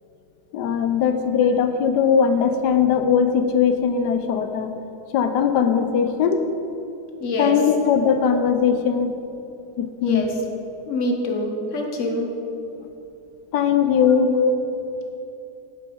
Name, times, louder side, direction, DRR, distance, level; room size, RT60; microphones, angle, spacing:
voice 1, 0.5-4.7 5.1-6.4 7.4-9.1 9.8-10.2 13.5-14.3, left 7 dB, 80° left, 8 dB, 1.3 m, -20 dB
voice 2, 7.2-7.6 10.0-10.3 10.9-12.3 14.3-14.5, left 2 dB, 50° left, 2 dB, 1.2 m, -25 dB
8.5 x 7.9 x 5.2 m, 2.8 s
omnidirectional pair, 1.8 m